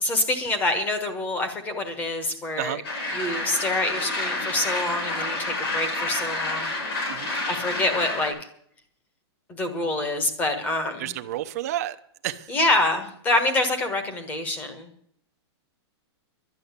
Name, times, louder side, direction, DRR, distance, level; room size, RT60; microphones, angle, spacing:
voice 1, 0.0-2.8 3.1-6.7 7.5-8.4 9.5-11.1 12.5-14.9, left 2 dB, 10° left, 1.3 m, -26 dB
sound 1, 2.8-8.3, left 2 dB, 60° left, 4.7 m, -29 dB
voice 2, 11.0-12.0 12.2-12.5, right 13 dB, 35° right, 0.7 m, -30 dB
11.5 x 10.0 x 8.1 m
supercardioid pair, 180°, 14 cm